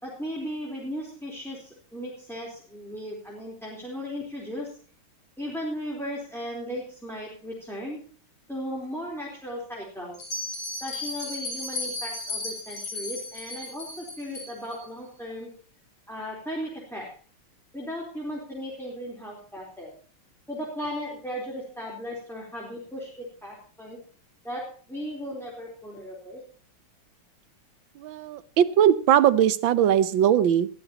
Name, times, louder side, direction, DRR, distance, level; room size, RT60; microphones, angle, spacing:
voice 1, 0.0-4.8 5.4-8.0 8.5-10.2 10.8-15.5 16.1-17.2 17.7-19.9 20.5-24.0 24.4-26.4, equal, ahead, -3 dB, 3.8 m, -36 dB
Bell, 10.1-14.8, left 2 dB, 85° left, 5.1 m, -35 dB
voice 2, 28.0-30.7, right 10 dB, 70° right, 15 dB, 1.5 m, -20 dB
21.0 x 14.5 x 3.0 m, 0.40 s
omnidirectional pair, 2.4 m